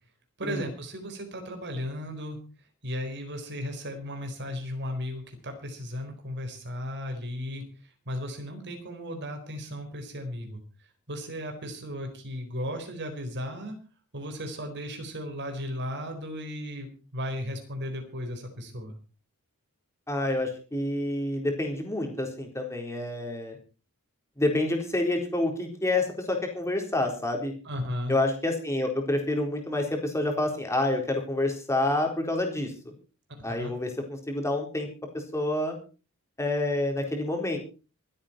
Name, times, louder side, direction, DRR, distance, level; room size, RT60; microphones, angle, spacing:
voice 1, 0.4-2.4 2.8-7.6 8.1-10.6 11.1-13.8 14.1-16.9 17.1-19.0 27.6-28.1 33.4-33.7, equal, 50° right, 5 dB, 4.2 m, -35 dB
voice 2, 20.1-23.6 24.4-27.5 28.1-32.7 33.4-34.9 35.1-35.8 36.4-37.6, left 2 dB, 15° left, 2 dB, 4.0 m, -28 dB
26.0 x 8.8 x 4.4 m, 0.35 s
head